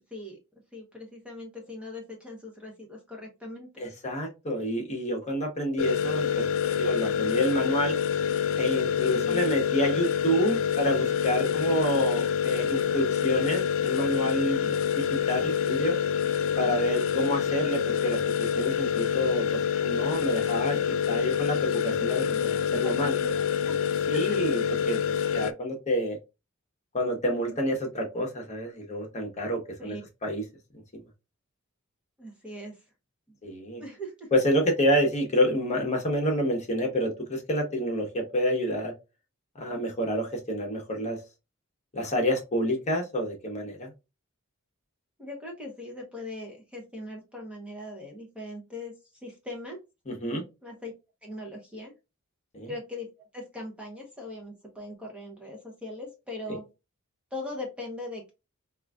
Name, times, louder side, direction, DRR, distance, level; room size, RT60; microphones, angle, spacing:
voice 1, 0.7-3.9 9.0-9.5 16.6-17.0 22.8-23.8 24.1-24.4 29.8-30.0 32.2-32.8 33.8-34.3 45.2-48.9 49.2-49.8 50.6-50.9 51.2-51.9 52.7-56.6 57.3-58.3, left 1 dB, 5° right, 0 dB, 0.8 m, -40 dB
voice 2, 3.8-6.4 6.8-7.9 8.6-15.9 16.6-19.5 19.8-23.2 24.1-24.6 24.9-25.0 25.3-26.2 26.9-29.9 30.2-30.4 33.4-33.8 34.3-38.9 39.5-41.2 41.9-43.9 50.1-50.4 52.5-52.7 56.5-56.6, equal, 30° left, 1 dB, 0.9 m, -28 dB
sound 1, 5.8-25.5, left 8 dB, 60° left, 0.3 m, -27 dB
4.6 x 2.5 x 2.3 m, 0.26 s
head